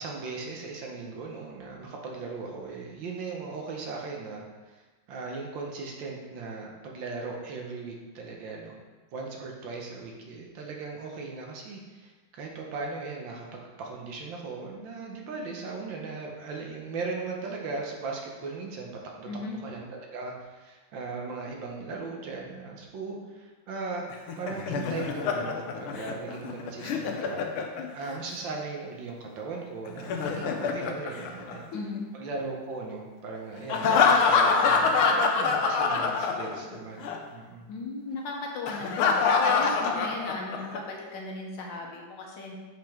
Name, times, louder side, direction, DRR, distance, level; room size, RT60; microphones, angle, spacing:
voice 1, 0.0-4.8 5.1-8.8 9.1-18.9 19.2-24.1 24.4-27.4 27.9-31.7 32.1-37.7, right 4 dB, 70° right, 0 dB, 1.6 m, -38 dB
voice 2, 19.3-19.6 31.7-32.0 37.7-42.6, left 3 dB, 70° left, 0 dB, 1.5 m, -36 dB
Laughter, 24.1-28.2 29.9-32.0 33.7-36.8 37.0-37.2 38.7-40.8, left 5 dB, 90° left, 1.5 m, -25 dB
6.2 x 5.1 x 3.5 m, 1.3 s
omnidirectional pair, 2.2 m